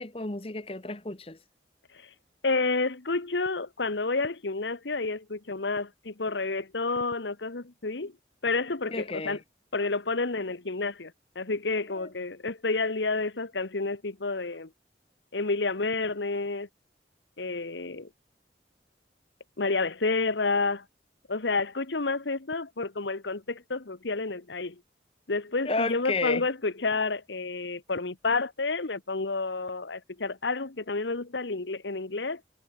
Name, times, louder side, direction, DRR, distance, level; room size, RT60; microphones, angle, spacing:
voice 1, 0.0-1.4 8.9-9.4 11.9-12.1 25.6-26.4, left 3 dB, 30° left, 1.2 m, -32 dB
voice 2, 2.4-8.1 8.4-9.4 9.7-14.7 15.3-16.7 17.4-18.1 19.6-20.8 21.3-24.8 25.3-32.4, left 3 dB, 80° left, 1.3 m, -30 dB
head